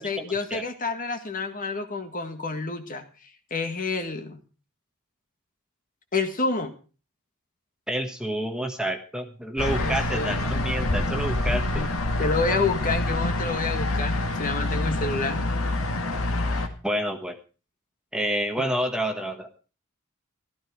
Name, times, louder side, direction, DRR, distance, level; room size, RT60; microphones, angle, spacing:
voice 1, 0.0-3.0 3.5-4.4 6.1-6.7 9.8-10.5 11.4-11.9 12.2-15.4, left 3 dB, 40° left, 7 dB, 1.7 m, -29 dB
voice 2, 7.9-11.8 16.8-17.4 18.1-19.5, right 1 dB, 5° right, 5 dB, 1.3 m, -28 dB
sound 1, 9.6-16.7, left 2 dB, 70° left, 2.0 m, -26 dB
14.5 x 12.5 x 4.7 m, 0.36 s
head